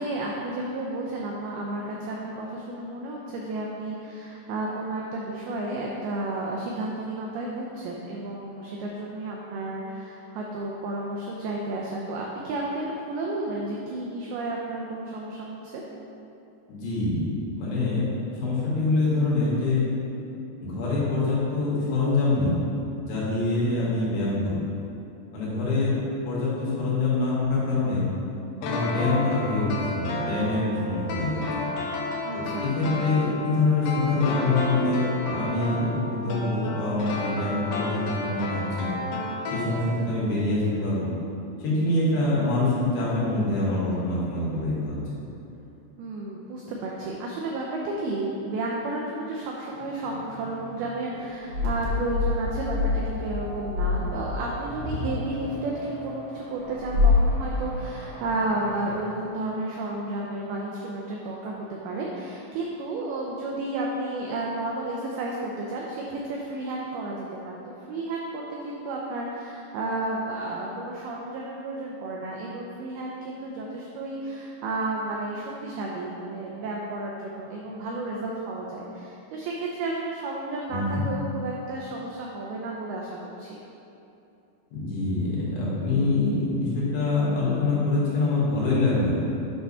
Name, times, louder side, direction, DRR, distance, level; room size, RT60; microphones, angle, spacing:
voice 1, 0.0-15.8 32.2-32.7 46.0-67.6 67.9-83.6, right 2 dB, 85° right, -2 dB, 2.2 m, -32 dB
voice 2, 16.7-17.3 17.5-18.0 18.3-19.8 20.6-22.6 23.0-24.6 25.3-25.9 26.2-28.1 28.6-31.7 32.3-38.9 39.5-41.1 41.6-45.0 80.7-81.0 84.7-89.2, left 2 dB, 70° left, -8 dB, 3.7 m, -25 dB
sound 1, 28.6-40.3 40.5-40.6, left 2 dB, 85° left, 1.9 m, -32 dB
sound 2, 49.8-58.9, left 3 dB, 60° right, 2.4 m, -28 dB
8.9 x 3.5 x 5.4 m, 2.8 s
omnidirectional pair, 5.2 m